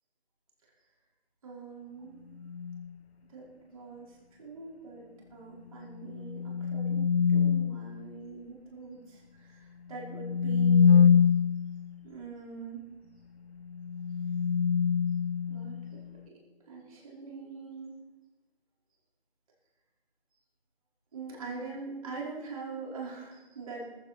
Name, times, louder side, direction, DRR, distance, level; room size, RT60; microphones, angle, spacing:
voice 1, 1.4-2.2 3.3-11.2 12.0-12.8 15.5-16.0 16.3-16.4 16.7-18.0 21.1-23.9, right 4 dB, 35° right, -4 dB, 5.2 m, -43 dB
sound 1, 2.4-2.9 6.0-7.9 10.0-11.7 13.7-16.0, left 7 dB, 70° left, 1.2 m, -25 dB
17.5 x 15.0 x 4.5 m, 1.1 s
figure-of-eight pair, 165°, 32 cm